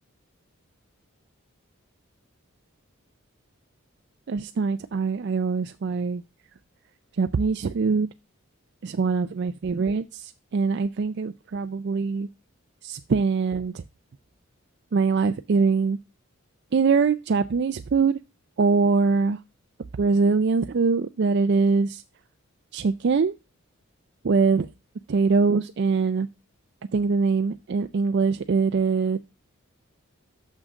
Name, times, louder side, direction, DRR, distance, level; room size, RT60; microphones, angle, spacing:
voice 1, 4.3-6.2 7.2-8.1 8.8-12.3 12.8-13.8 14.9-16.0 16.7-18.2 18.6-19.4 20.0-22.0 22.7-23.3 24.2-24.7 25.1-26.3 26.9-29.2, right 4 dB, 55° right, 0.4 m, -23 dB
6.4 x 6.1 x 6.3 m
head